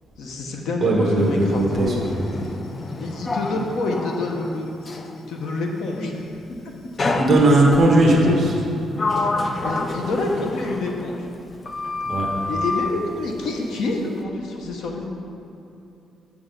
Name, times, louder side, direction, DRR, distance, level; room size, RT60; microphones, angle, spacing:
voice 1, 0.2-2.5 3.0-4.7 5.3-6.2 6.6-6.7 7.3-7.4 8.1-8.4 9.6-11.3 12.5-15.1, left 3 dB, 75° left, 1 dB, 1.0 m, -27 dB
voice 2, 0.8-2.2 7.1-8.3 12.1-12.3, right 2 dB, 30° right, -2 dB, 1.2 m, -17 dB
Sliding door, 1.2-5.2 7.0-7.9 8.5-11.4 11.7-13.0, left 2 dB, 25° left, 0.4 m, -28 dB
7.0 x 6.2 x 5.3 m, 2.7 s
cardioid pair, 175°, 0 cm